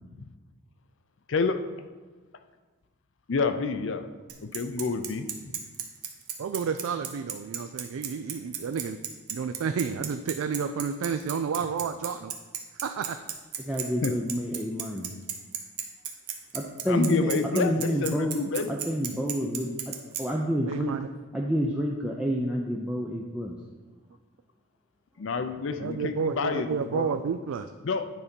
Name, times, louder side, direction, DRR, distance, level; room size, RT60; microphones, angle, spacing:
voice 1, 3.3-4.0 4.4-5.6 14.0-14.1 16.9-18.8 25.2-27.1 27.8-28.0, left 4 dB, 55° left, 9 dB, 0.5 m, -28 dB
Bicycle, 4.3-20.2, right 9 dB, 90° right, 0.9 m, -34 dB
voice 2, 6.4-9.0 9.3-12.3 12.8-13.2 20.7-21.1 25.8-27.7, right 6 dB, 70° right, 8 dB, 0.3 m, -31 dB
voice 3, 13.6-15.1 16.5-18.3 18.7-19.9 20.2-21.0 21.3-23.5, equal, 5° right, -2 dB, 0.5 m, -28 dB
9.4 x 4.2 x 5.2 m, 1.3 s
head